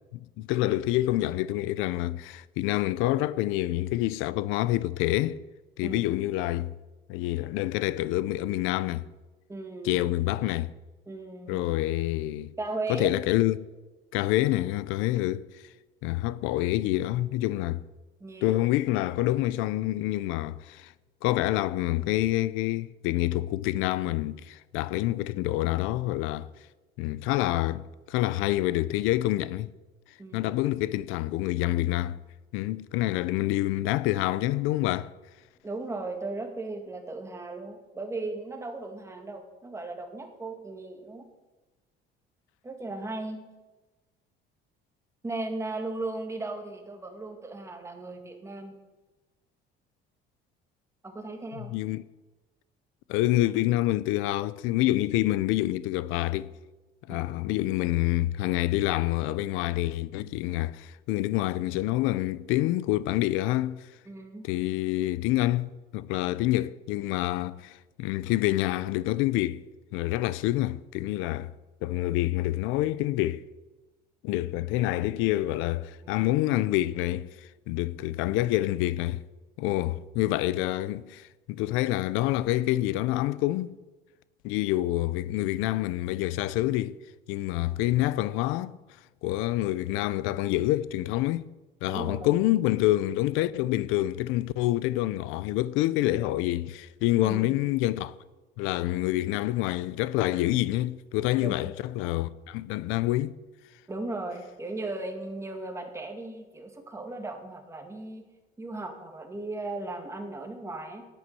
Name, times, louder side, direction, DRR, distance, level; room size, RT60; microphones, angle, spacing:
voice 1, 0.1-5.4 5.8-6.7 7.1-9.1 9.8-10.7 11.5-12.5 12.9-13.7 14.1-15.5 16.0-17.8 18.4-20.9 21.2-26.5 27.0-27.8 28.1-29.7 30.3-32.2 32.5-35.1 51.6-52.0 53.1-56.5 57.1-63.9 64.4-69.6 69.9-71.5 71.8-73.5 74.2-79.2 79.6-83.8 84.4-87.0 87.3-88.8 89.2-91.5 91.8-98.1 98.6-103.3, left 16 dB, 90° left, 0.6 m, -27 dB
voice 2, 9.5-10.0 11.1-11.6 12.6-13.1 18.2-18.7 30.2-30.5 35.6-41.3 42.6-43.4 45.2-48.8 51.0-51.7 57.1-57.3 64.1-64.5 76.0-76.3 79.7-79.8 91.9-92.4 97.2-97.5 101.4-101.7 103.9-108.3 108.6-111.0, right 2 dB, 15° right, 2.1 m, -37 dB
11.5 x 9.3 x 9.6 m
cardioid pair, 140°, 20 cm